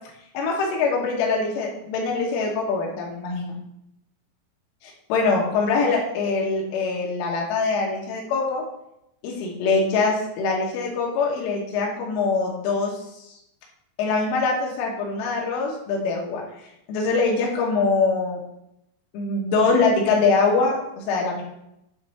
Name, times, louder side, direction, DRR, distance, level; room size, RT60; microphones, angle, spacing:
voice 1, 0.4-3.6 5.1-8.6 9.2-12.9 14.0-16.4 16.9-18.4 19.1-21.4, left 4 dB, 80° left, -1 dB, 3.6 m, -23 dB
9.4 x 3.2 x 4.2 m, 0.81 s
omnidirectional pair, 5.8 m